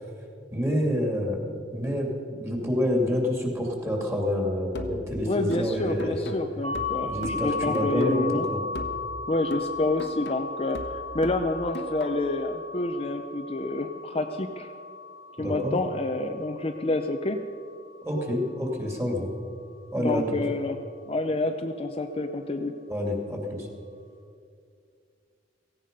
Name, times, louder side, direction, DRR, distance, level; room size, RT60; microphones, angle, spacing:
voice 1, 0.5-2.1 2.4-6.3 7.1-8.6 15.4-15.8 18.0-19.3 19.9-20.2 22.9-23.7, left 1 dB, 15° right, 0 dB, 2.7 m, -28 dB
sound 1, 4.7-8.4 8.7-12.4, equal, 65° left, 1.3 m, -39 dB
voice 2, 5.3-8.5 9.3-14.7 15.4-17.4 20.0-20.8 21.1-22.7, left 2 dB, 30° left, 5 dB, 0.6 m, -28 dB
sound 2, 6.6-18.4, left 4 dB, 85° right, 3.1 m, -36 dB
17.0 x 16.0 x 5.4 m, 2.4 s
head